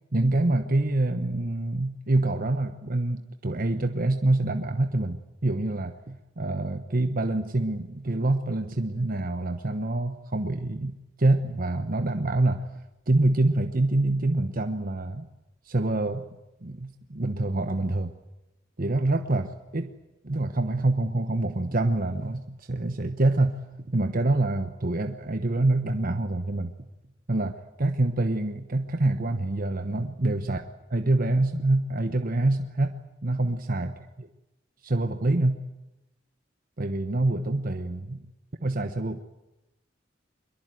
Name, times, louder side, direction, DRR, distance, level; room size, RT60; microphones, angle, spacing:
voice 1, 0.1-12.7 13.1-15.3 15.6-16.2 16.6-18.1 18.8-19.9 20.2-23.6 23.9-26.9 27.3-30.6 30.9-33.0 33.2-33.9 34.2-34.3 34.8-35.6 36.8-38.2 38.6-39.2, right 2 dB, 45° right, 7 dB, 1.1 m, -26 dB
22.5 x 22.5 x 9.3 m, 0.98 s
head